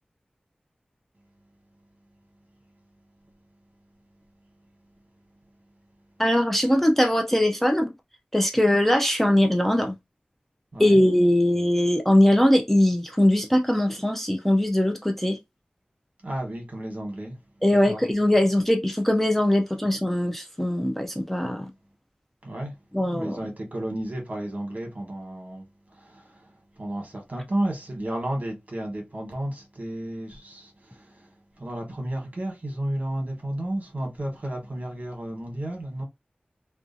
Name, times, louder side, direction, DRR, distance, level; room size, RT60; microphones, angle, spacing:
voice 1, 6.2-7.9 8.3-10.0 10.8-15.4 17.6-21.7 22.9-23.4, left 1 dB, 5° left, 0.3 m, -21 dB
voice 2, 10.7-11.0 16.2-17.3 17.9-18.0 22.4-22.7 23.1-25.7 26.0-26.3 26.8-31.2 31.6-36.0, right 1 dB, 50° right, 1.1 m, -32 dB
2.5 x 2.3 x 2.5 m
wide cardioid pair, 70°, 3 cm